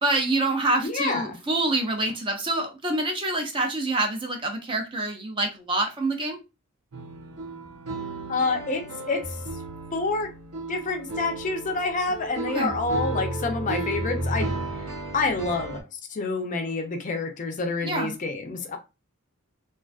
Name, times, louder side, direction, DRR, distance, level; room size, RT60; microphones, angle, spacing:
voice 1, 0.0-6.4 12.5-12.7 17.8-18.1, right 2 dB, 25° right, 0.4 m, -26 dB
voice 2, 0.8-1.4 8.3-9.2 9.9-10.3 10.7-14.5 15.1-15.8 16.1-18.8, left 3 dB, 35° left, 0.4 m, -27 dB
sound 1, 6.9-15.8, right 2 dB, 70° right, 0.7 m, -33 dB
2.4 x 2.3 x 2.3 m
head